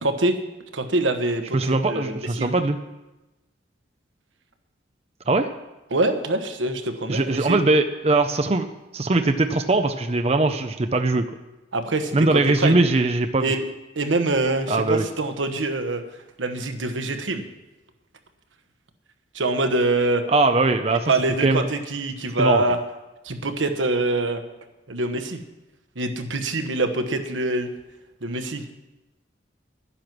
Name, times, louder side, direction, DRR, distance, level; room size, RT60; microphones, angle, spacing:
voice 1, 0.0-0.4 0.7-2.5 5.9-7.6 11.7-12.8 13.4-13.6 14.0-16.0 16.4-17.5 19.3-20.2 21.1-22.8 23.2-24.4 24.9-25.4 26.0-27.7 28.2-28.6, right 2 dB, 90° right, 7 dB, 1.2 m, -24 dB
voice 2, 1.5-2.8 5.3-5.5 7.1-8.7 8.9-11.3 12.1-13.5 14.7-15.1 20.3-21.1 21.4-21.6 22.4-22.6, right 2 dB, 35° right, 7 dB, 0.5 m, -21 dB
11.0 x 10.0 x 6.1 m, 1.0 s
head